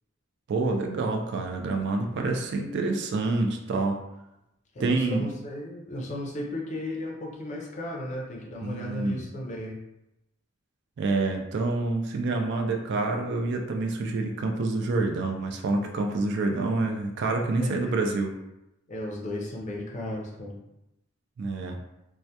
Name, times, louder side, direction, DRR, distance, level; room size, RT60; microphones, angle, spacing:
voice 1, 0.5-4.0 4.8-5.3 8.6-9.2 11.0-18.3 21.4-21.8, right 3 dB, 55° right, 3 dB, 0.3 m, -27 dB
voice 2, 4.7-9.8 17.6-18.0 18.9-20.6, left 1 dB, 35° left, -1 dB, 0.4 m, -35 dB
2.2 x 2.1 x 2.7 m, 0.88 s
head